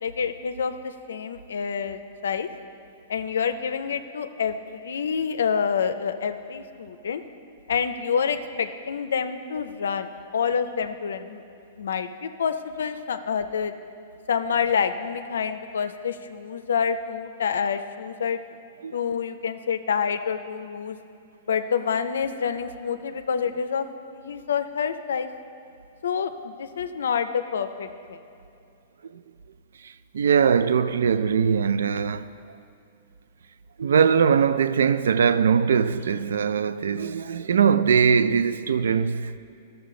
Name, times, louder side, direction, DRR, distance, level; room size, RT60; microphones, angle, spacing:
voice 1, 0.0-2.5 3.1-7.2 7.7-11.4 11.8-13.7 14.3-18.4 18.9-21.0 21.5-25.3 26.0-28.2, left 6 dB, 85° left, 0.4 m, -27 dB
voice 2, 29.8-32.3 33.8-39.4, right 6 dB, 85° right, 0.3 m, -21 dB
12.5 x 6.9 x 3.8 m
hypercardioid pair, 135°, 0 cm